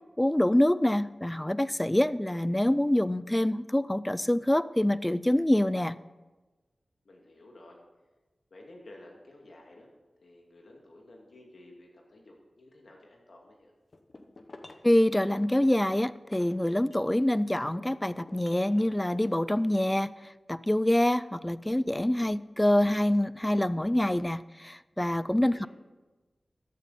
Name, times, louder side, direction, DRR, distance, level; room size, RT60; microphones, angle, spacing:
voice 1, 0.2-6.0 14.8-20.1 20.5-25.7, left 1 dB, 15° left, 17 dB, 0.4 m, -26 dB
voice 2, 7.0-7.8 8.5-9.9 10.2-13.7 25.4-25.7, left 1 dB, 75° left, -1 dB, 2.5 m, -53 dB
sound 1, 13.9-15.0 15.6-17.2 17.6-19.0, left 2 dB, 55° left, 1.0 m, -51 dB
14.0 x 8.9 x 4.2 m, 1.2 s
cardioid pair, 50°, 0 cm